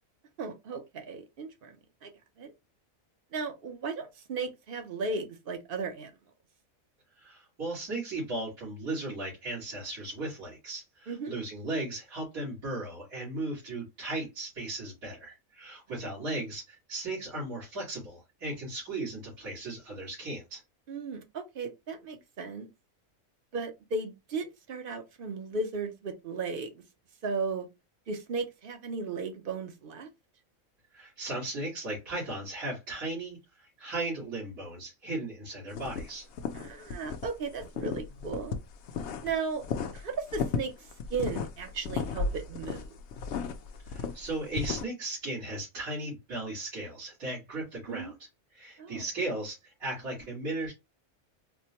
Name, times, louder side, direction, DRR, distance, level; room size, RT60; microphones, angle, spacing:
voice 1, 0.4-1.7 2.0-2.1 2.4-2.5 3.3-6.1 11.1-11.4 20.9-22.7 23.5-26.8 27.2-27.7 28.1-30.1 36.5-38.6 39.2-39.6 39.9-40.7 41.1-42.9 47.9-48.1 48.8-49.0, right 4 dB, 50° right, 0.8 m, -35 dB
voice 2, 7.2-20.6 30.9-33.4 33.8-36.3 43.9-48.1 48.5-50.7, right 2 dB, 85° right, 2.3 m, -36 dB
sound 1, 35.7-37.3 37.6-39.3 39.6-44.8, left 5 dB, 65° left, 0.8 m, -34 dB
4.3 x 2.1 x 2.8 m
omnidirectional pair, 1.4 m